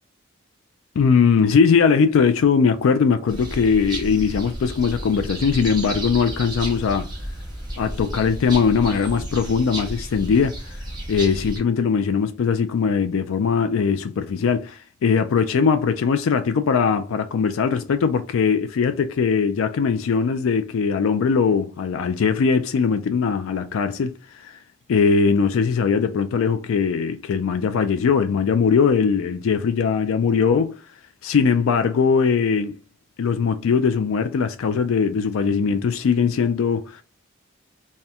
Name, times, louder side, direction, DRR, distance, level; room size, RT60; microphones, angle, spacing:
voice 1, 1.0-7.1 7.8-10.8 11.1-24.6 24.9-30.8 31.2-32.8 33.2-37.0, left 6 dB, 80° left, 0.4 m, -20 dB
sound 1, 3.3-11.6, right 1 dB, 20° right, 1.0 m, -32 dB
4.2 x 2.1 x 3.5 m
head